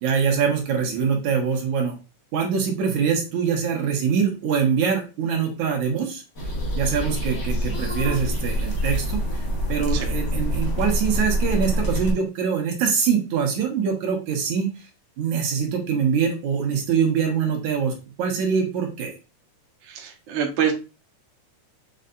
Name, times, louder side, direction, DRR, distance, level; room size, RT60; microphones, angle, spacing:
voice 1, 0.0-1.9 2.3-6.2 6.8-9.2 9.7-14.7 15.2-17.9 18.2-19.1, right 6 dB, 70° right, 1 dB, 2.9 m, -23 dB
sound 1, 6.3-12.1, equal, 35° left, 1.8 m, -25 dB
voice 2, 19.9-20.7, right 8 dB, 55° right, 1 dB, 1.4 m, -25 dB
6.9 x 5.4 x 2.6 m, 0.30 s
omnidirectional pair, 3.5 m